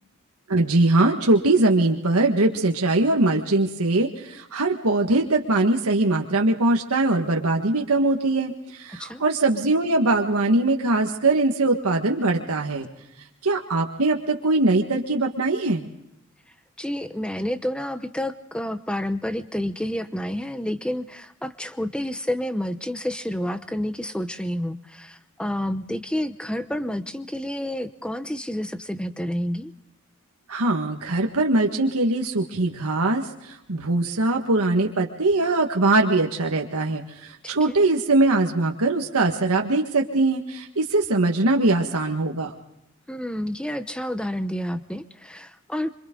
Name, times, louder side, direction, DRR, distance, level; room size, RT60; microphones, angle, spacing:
voice 1, 0.5-12.9 13.4-15.8 30.5-33.3 33.7-42.5, right 2 dB, 90° right, 2 dB, 1.6 m, -21 dB
voice 2, 16.8-29.7 37.4-37.8 43.1-45.9, left 1 dB, 5° left, 11 dB, 0.8 m, -29 dB
26.0 x 26.0 x 3.8 m, 0.85 s
head